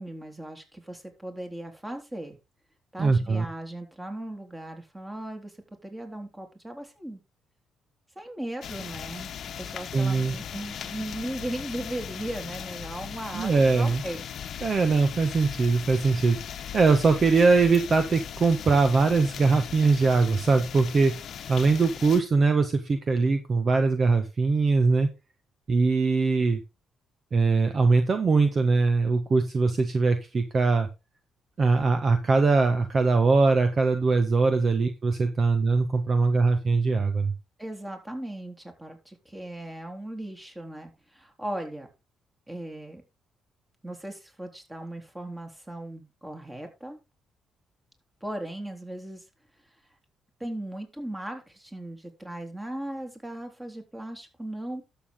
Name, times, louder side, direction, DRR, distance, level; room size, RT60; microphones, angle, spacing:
voice 1, 0.0-2.4 2.9-5.6 5.8-7.2 8.2-9.3 9.6-14.2 37.6-41.9 42.5-43.0 43.8-47.0 48.2-49.2 50.4-54.8, right 1 dB, 15° right, 5 dB, 3.4 m, -37 dB
voice 2, 3.0-3.4 9.9-10.3 13.3-14.0 14.6-16.4 16.7-21.1 21.5-25.1 25.7-26.6 27.3-30.9 31.6-37.3, right 4 dB, 40° right, 8 dB, 1.4 m, -22 dB
sound 1, 8.6-22.2, left 9 dB, 65° left, 1.1 m, -38 dB
12.0 x 7.1 x 3.8 m, 0.26 s
cardioid pair, 90°, 0 cm